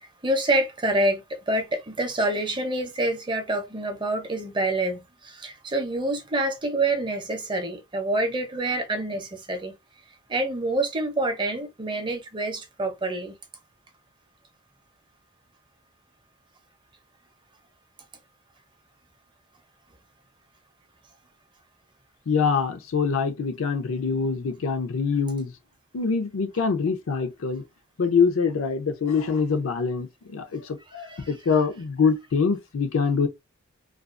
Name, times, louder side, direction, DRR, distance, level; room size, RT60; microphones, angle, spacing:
voice 1, 0.2-9.7 10.3-13.3 31.1-31.3, right 2 dB, 25° right, 0.6 m, -27 dB
voice 2, 22.3-25.5 25.9-27.6 28.0-33.3, left 5 dB, 70° left, 0.5 m, -24 dB
2.3 x 2.3 x 2.4 m
head